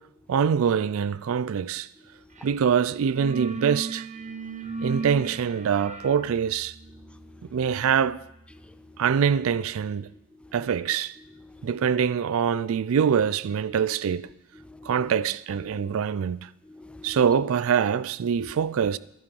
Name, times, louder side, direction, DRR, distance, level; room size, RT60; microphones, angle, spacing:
voice 1, 0.3-1.9 2.4-4.1 4.8-6.7 7.5-8.2 9.0-10.1 10.5-11.2 11.6-14.3 14.8-16.5 17.0-19.0, right 7 dB, 70° right, 0.4 m, -24 dB
sound 1, 2.4-2.6 2.9-9.5, right 3 dB, 35° right, 1.0 m, -38 dB
voice 2, 7.1-7.5 8.6-9.0 10.1-10.5 11.4-11.7 14.6-15.0 15.6-16.0 16.6-17.2 18.4-18.5, left 2 dB, 5° left, 0.5 m, -49 dB
12.0 x 10.5 x 5.3 m
head